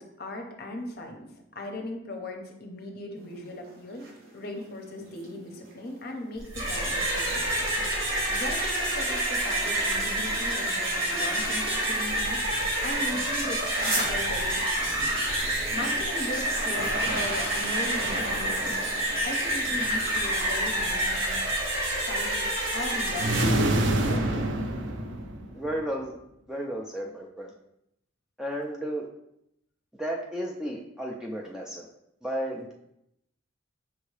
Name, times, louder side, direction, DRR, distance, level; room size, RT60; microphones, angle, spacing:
voice 1, 0.0-7.7 8.3-15.2 15.7-21.5 21.8-24.5, left 1 dB, 50° left, 3 dB, 0.7 m, -38 dB
sound 1, 3.2-20.6, right 2 dB, 50° right, 0.9 m, -43 dB
sound 2, 6.4-23.4, right 1 dB, 85° right, 1.5 m, -28 dB
sound 3, 23.1-25.7, right 1 dB, 65° right, 0.5 m, -26 dB
voice 2, 25.5-26.1 26.5-27.5 28.4-29.1 29.9-31.9 32.2-32.7, equal, 5° right, -1 dB, 0.3 m, -33 dB
5.8 x 2.7 x 3.2 m, 0.80 s
head